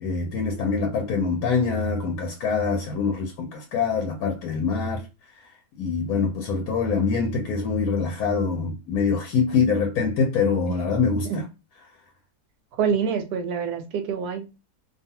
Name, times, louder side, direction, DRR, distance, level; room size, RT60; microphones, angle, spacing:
voice 1, 0.0-5.0 5.8-11.4, left 5 dB, 75° left, 1.0 m, -24 dB
voice 2, 10.7-11.0 11.2-11.4 12.8-14.5, right 6 dB, 85° right, 1.1 m, -26 dB
2.6 x 2.3 x 2.7 m
omnidirectional pair, 1.6 m